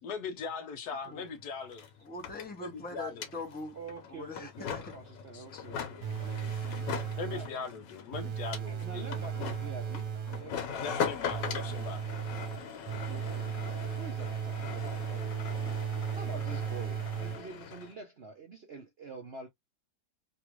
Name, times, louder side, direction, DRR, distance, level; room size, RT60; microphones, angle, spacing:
voice 1, 0.0-1.9 2.6-3.3 5.3-5.4 7.2-9.2 10.8-12.1, left 5 dB, 70° left, 1.1 m, -40 dB
sound 1, 1.0-1.1 1.3-17.9, left 7 dB, 90° left, 1.5 m, -41 dB
voice 2, 2.0-3.8 4.1-4.9, left 3 dB, 10° left, 0.6 m, -42 dB
voice 3, 3.7-6.1 7.2-7.5 8.7-10.9 13.0-19.5, right 4 dB, 55° right, 0.7 m, -47 dB
sound 2, 6.0-7.7 8.1-10.6 11.3-17.7, right 8 dB, 70° right, 1.5 m, -36 dB
3.3 x 2.3 x 3.1 m
omnidirectional pair, 1.9 m